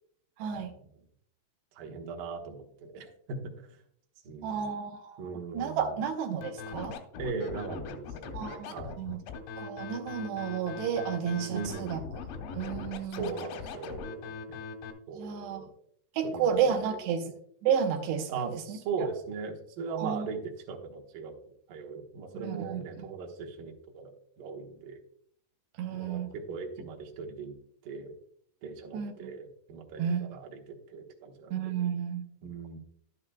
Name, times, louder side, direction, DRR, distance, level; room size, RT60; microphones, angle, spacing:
voice 1, 0.4-0.7 4.4-7.0 8.3-9.2 9.6-12.0 12.6-13.3 15.1-15.7 16.1-17.2 17.6-19.1 20.0-20.3 22.3-22.8 25.8-26.3 28.9-29.3 30.0-30.2 31.5-32.2, right 7 dB, 85° right, 4 dB, 3.1 m, -32 dB
voice 2, 1.8-3.8 4.2-4.7 5.2-6.0 7.2-9.0 11.5-11.9 13.0-14.6 15.1-15.7 16.2-17.0 18.3-20.4 20.7-21.4 21.7-25.0 25.9-27.5 27.8-28.1 28.6-31.8 32.4-32.8, right 5 dB, 65° right, 1 dB, 2.5 m, -39 dB
Scratching (performance technique), 6.4-14.9, left 5 dB, 90° left, 3.3 m, -40 dB
11.5 x 10.0 x 2.2 m, 0.67 s
omnidirectional pair, 4.8 m